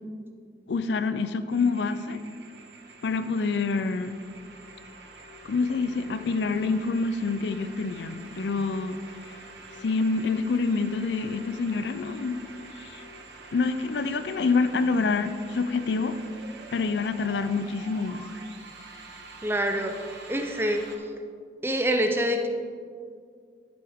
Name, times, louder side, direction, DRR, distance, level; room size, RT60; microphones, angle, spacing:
voice 1, 0.7-2.2 3.0-4.2 5.5-9.0 9.8-12.4 12.8-13.0 13.5-16.2 16.7-18.2, left 4 dB, 80° left, 11 dB, 0.5 m, -27 dB
sound 1, 1.5-21.0, right 2 dB, 85° right, 1.2 m, -46 dB
voice 2, 19.4-20.0 20.3-20.8 21.6-22.5, equal, 15° right, 5 dB, 0.6 m, -25 dB
11.5 x 7.8 x 3.6 m, 2.2 s
head